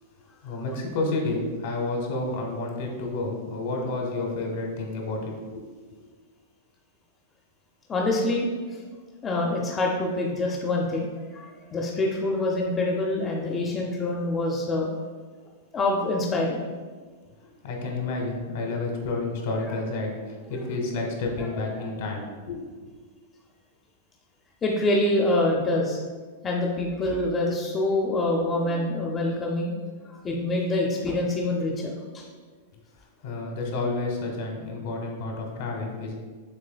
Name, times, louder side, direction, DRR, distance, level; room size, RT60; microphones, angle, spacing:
voice 1, 0.4-5.3 17.6-22.9 33.2-36.1, left 2 dB, 65° left, 1 dB, 1.0 m, -30 dB
voice 2, 7.9-8.5 9.2-14.9 15.7-16.6 19.7-19.8 21.4-21.5 24.6-26.0 26.4-29.7 30.2-32.2, left 2 dB, 20° left, -1 dB, 0.5 m, -26 dB
6.6 x 3.2 x 2.2 m, 1.5 s
supercardioid pair, 145°, 0 cm